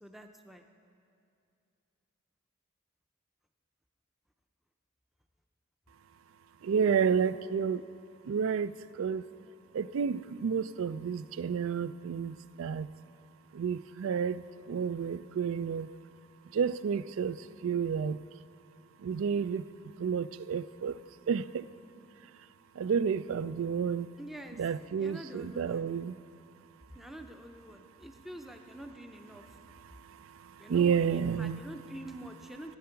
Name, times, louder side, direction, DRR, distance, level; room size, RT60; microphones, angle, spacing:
voice 1, 0.0-0.6 24.2-24.6 25.0-25.9 26.9-29.4 30.6-32.8, right 1 dB, ahead, 4 dB, 0.5 m, -46 dB
voice 2, 6.6-7.8 8.3-9.2 9.7-12.9 13.5-15.9 16.5-17.4 17.6-18.2 19.0-19.6 20.0-21.0 21.3-21.6 22.8-24.1 24.6-26.1 30.7-31.6, right 7 dB, 85° right, 16 dB, 0.3 m, -30 dB
15.0 x 9.6 x 5.8 m, 2.6 s
head